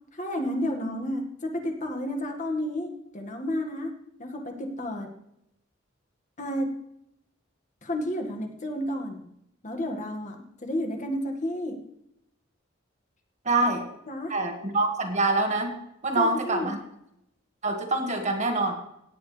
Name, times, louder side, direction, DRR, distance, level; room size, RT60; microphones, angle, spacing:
voice 1, 0.1-3.9 4.2-5.1 6.4-6.7 7.8-9.2 9.6-11.8 14.1-14.3 16.1-16.7, left 1 dB, 40° left, 3 dB, 1.9 m, -31 dB
voice 2, 13.4-13.8 14.3-15.8 16.0-16.8 17.6-18.8, right 2 dB, 35° right, 4 dB, 1.8 m, -25 dB
17.0 x 9.4 x 3.4 m, 0.77 s
head